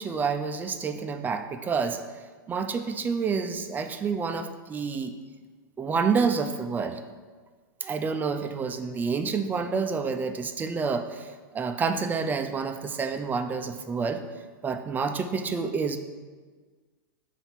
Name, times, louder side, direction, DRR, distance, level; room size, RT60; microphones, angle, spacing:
voice 1, 0.0-2.0 2.5-5.1 5.8-7.0 7.8-14.2 14.6-16.0, right 5 dB, 15° right, 8 dB, 0.4 m, -28 dB
5.6 x 4.1 x 5.9 m, 1.5 s
hypercardioid pair, 125°, 11 cm